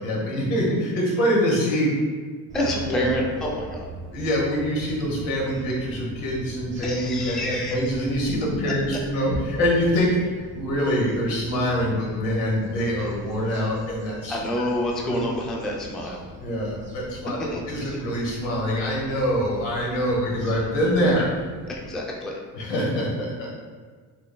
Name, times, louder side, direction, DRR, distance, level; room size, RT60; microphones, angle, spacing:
voice 1, 0.0-1.9 2.9-3.0 4.1-14.6 15.1-15.2 16.4-21.3 22.5-23.5, equal, 85° left, -2 dB, 1.3 m, -25 dB
voice 2, 2.5-3.9 6.8-7.8 8.6-8.7 13.0-13.1 14.3-16.2 17.5-17.6 21.0-21.2 21.7-22.3, left 1 dB, ahead, -2 dB, 0.3 m, -28 dB
sound 1, 2.5-21.9, right 2 dB, 25° right, 0.8 m, -41 dB
6.1 x 2.1 x 2.2 m, 1.5 s
cardioid pair, 95°, 43 cm